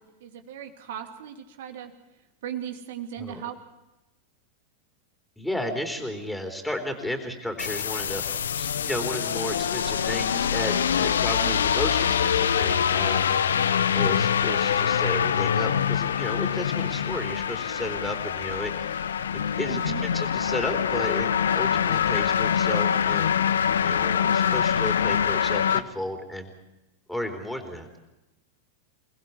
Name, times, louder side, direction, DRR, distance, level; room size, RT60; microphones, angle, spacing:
voice 1, 0.0-1.9 2.4-3.6 11.4-11.7 19.7-20.1, right 9 dB, 55° right, 5 dB, 2.9 m, -37 dB
voice 2, 5.4-8.2 8.5-13.6 13.9-23.4 23.8-26.5 27.1-28.0, left 1 dB, 5° left, 5 dB, 3.9 m, -33 dB
sound 1, 7.6-25.8, left 8 dB, 65° left, 0.8 m, -24 dB
29.0 x 19.5 x 4.7 m, 0.99 s
figure-of-eight pair, 90°, 0 cm